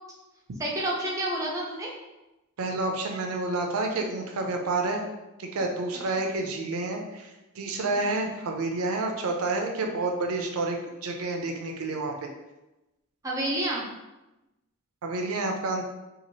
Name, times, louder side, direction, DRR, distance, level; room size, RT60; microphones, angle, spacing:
voice 1, 0.6-1.9 6.1-6.2 8.0-8.1 13.2-13.8, right 1 dB, 15° right, -4 dB, 0.5 m, -29 dB
voice 2, 2.6-5.1 5.4-12.1 15.0-15.8, right 2 dB, 80° right, 2 dB, 0.5 m, -29 dB
3.0 x 2.4 x 2.7 m, 1.0 s
head